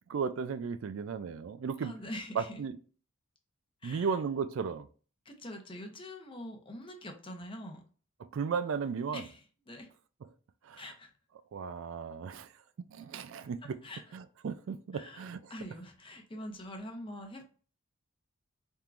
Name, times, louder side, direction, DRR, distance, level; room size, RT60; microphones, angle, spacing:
voice 1, 0.1-1.9 2.4-2.8 3.8-4.9 8.2-9.2 10.6-10.8 11.5-12.5 12.9-13.8 14.1-15.4, right 6 dB, 65° right, 0.3 m, -35 dB
voice 2, 1.8-2.6 3.8-4.1 5.2-7.8 9.1-9.9 10.8-11.1 13.8-14.0 14.9-17.4, left 1 dB, 25° left, 0.7 m, -44 dB
4.4 x 3.6 x 2.4 m
head